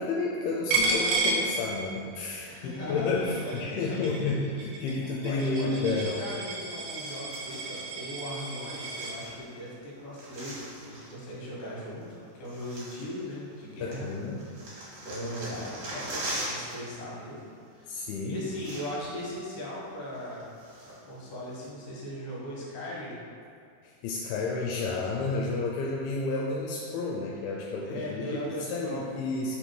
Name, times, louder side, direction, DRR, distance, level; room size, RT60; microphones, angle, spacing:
voice 1, 0.0-6.2 13.8-14.4 17.9-18.4 23.8-29.6, left 3 dB, 85° left, -2 dB, 2.5 m, -31 dB
Coin (dropping), 0.7-2.2 2.6-9.2, right 3 dB, 80° right, 1.7 m, -32 dB
voice 2, 2.3-4.4 5.2-14.1 15.0-17.4 17.7-20.5 20.8-23.2 27.8-29.0, equal, 65° left, -5 dB, 2.9 m, -38 dB
sound 1, 6.8-7.8 8.6-9.7 9.9-11.2 12.0-12.1 12.4-13.6 13.9-16.9 17.2-17.4 18.1-18.2 18.4-19.2 19.5-19.6 20.1-21.1 21.6-21.7, right 1 dB, 55° right, 2.1 m, -41 dB
5.2 x 4.3 x 4.5 m, 2.3 s
omnidirectional pair, 4.4 m